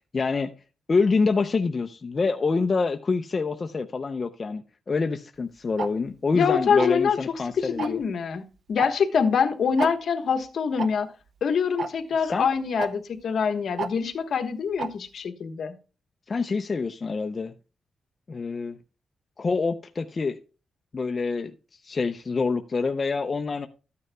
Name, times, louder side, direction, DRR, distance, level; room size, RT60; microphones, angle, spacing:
voice 1, 0.1-0.5 0.9-8.0 12.2-12.5 16.3-17.5 18.3-18.8 19.4-20.4 20.9-21.5 21.8-23.7, left 4 dB, 35° left, 0.5 m, -26 dB
Tick-tock, 5.8-5.9 6.8-7.1 7.8-8.0 8.8-8.9 9.2-9.3 9.8-9.9 10.8-10.9 11.8-11.9 12.8-12.9 13.8-13.9 14.8-14.9, right 5 dB, 60° right, 0.6 m, -29 dB
voice 2, 6.3-7.2 7.6-11.1 11.4-15.7, left 6 dB, 65° left, 1.1 m, -25 dB
13.5 x 9.4 x 2.2 m
wide cardioid pair, 130°, 0 cm